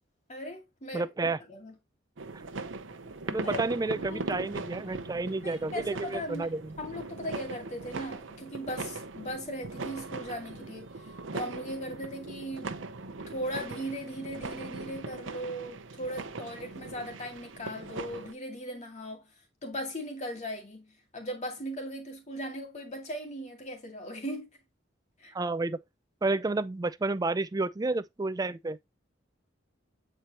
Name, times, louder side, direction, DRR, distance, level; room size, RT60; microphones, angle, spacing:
voice 1, 0.3-1.8 3.4-3.7 4.0-4.5 5.4-19.3 19.6-24.5 25.2-25.3, equal, 40° left, 2.2 m, -39 dB
voice 2, 0.9-1.4 3.3-6.7 25.3-25.8 26.2-28.8, right 3 dB, 20° right, 0.4 m, -30 dB
sound 1, 2.2-18.3, right 3 dB, 75° right, 0.7 m, -40 dB
8.1 x 4.5 x 2.9 m
head